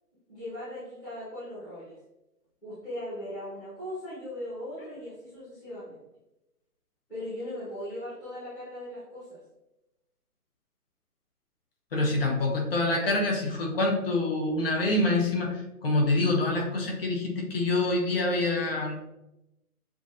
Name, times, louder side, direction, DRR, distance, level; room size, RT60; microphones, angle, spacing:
voice 1, 0.3-2.0 2.6-6.0 7.1-9.4, left 1 dB, 5° left, -15 dB, 1.0 m, -38 dB
voice 2, 11.9-18.9, left 2 dB, 40° left, 0 dB, 1.0 m, -26 dB
7.1 x 2.7 x 2.7 m, 0.94 s
hypercardioid pair, 165°, 45 cm